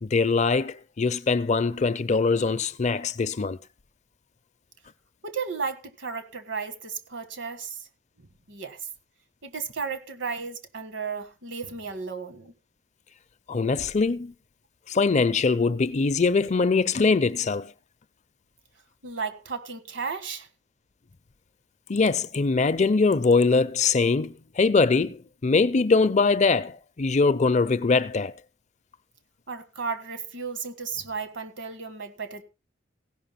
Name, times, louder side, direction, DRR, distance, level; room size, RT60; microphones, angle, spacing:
voice 1, 0.0-3.6 13.5-14.3 14.9-17.7 21.9-28.3, left 4 dB, 35° left, 0.5 m, -22 dB
voice 2, 5.2-7.8 8.5-8.8 9.4-12.5 19.0-20.5 29.5-32.4, right 5 dB, 70° right, 1.6 m, -34 dB
16.5 x 5.7 x 5.7 m
head